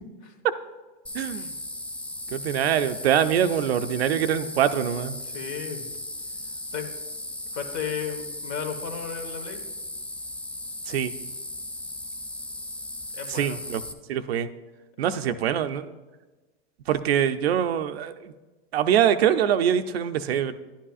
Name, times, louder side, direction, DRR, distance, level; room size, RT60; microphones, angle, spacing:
sound 1, 1.1-13.9, left 1 dB, 5° left, 0.4 m, -37 dB
voice 1, 1.1-1.5 2.3-5.2 10.9-11.1 13.3-13.8 14.1-14.5 15.0-15.9 16.9-18.3 18.7-20.5, right 9 dB, 90° right, 10 dB, 0.6 m, -24 dB
voice 2, 5.2-5.9 6.7-6.9 7.5-9.6 12.5-12.7 13.1-13.6 15.0-15.1, left 7 dB, 50° left, 6 dB, 1.4 m, -34 dB
10.5 x 10.0 x 2.4 m, 1.2 s
hypercardioid pair, 110°, 30 cm